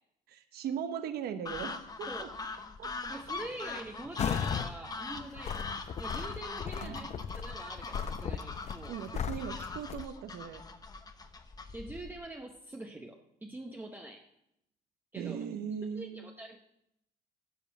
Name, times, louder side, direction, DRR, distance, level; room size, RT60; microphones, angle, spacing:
voice 1, 0.3-2.3 2.8-2.9 6.8-7.1 8.9-10.6 15.2-16.3, right 8 dB, 70° right, 9 dB, 0.9 m, -39 dB
sound 1, 1.4-12.2, left 3 dB, 20° left, 0.8 m, -42 dB
voice 2, 3.1-5.7 6.0-9.0 11.7-14.3 15.1-15.4 15.9-16.6, right 2 dB, 10° right, 2 dB, 0.8 m, -45 dB
sound 2, 4.2-4.7 5.1-10.1, left 7 dB, 40° left, 0.6 m, -36 dB
10.5 x 5.2 x 7.8 m, 0.80 s
cardioid pair, 110°, 17 cm